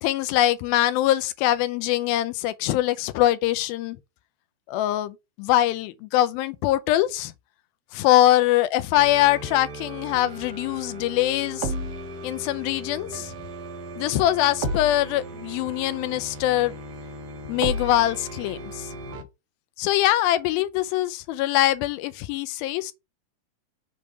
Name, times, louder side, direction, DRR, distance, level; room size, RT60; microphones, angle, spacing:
voice 1, 0.0-4.0 4.7-7.3 7.9-11.7 12.2-13.3 14.0-16.7 17.5-18.9 19.8-22.9, left 14 dB, 85° left, 2.4 m, -23 dB
sound 1, 8.9-19.2, right 1 dB, 65° right, 1.5 m, -35 dB
6.8 x 3.2 x 4.8 m
omnidirectional pair, 4.2 m